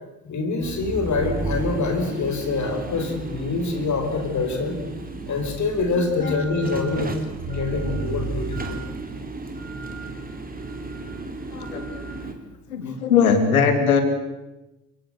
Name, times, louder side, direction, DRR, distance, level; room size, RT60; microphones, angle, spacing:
voice 1, 0.2-4.8 5.3-8.8 12.9-13.0, left 3 dB, 40° left, 6 dB, 4.5 m, -25 dB
sound 1, 0.6-12.3, right 3 dB, 20° right, 4.3 m, -33 dB
voice 2, 11.5-11.9 12.7-14.0, left 6 dB, 80° left, 8 dB, 3.0 m, -20 dB
29.5 x 17.0 x 8.3 m, 1.0 s
figure-of-eight pair, 50°, 43 cm